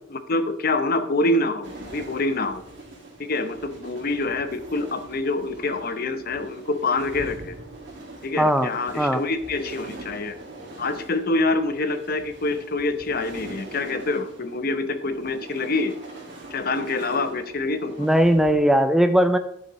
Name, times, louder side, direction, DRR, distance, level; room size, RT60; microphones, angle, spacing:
voice 1, 0.1-2.6 3.2-7.6 8.2-10.3 10.8-16.0 16.5-18.1, left 2 dB, 50° left, 9 dB, 0.8 m, -26 dB
sound 1, 1.6-18.5, right 2 dB, 65° right, 2.0 m, -42 dB
voice 2, 8.4-8.7 9.0-9.2 18.0-19.4, equal, ahead, 8 dB, 0.4 m, -18 dB
11.0 x 7.2 x 3.1 m, 0.74 s
head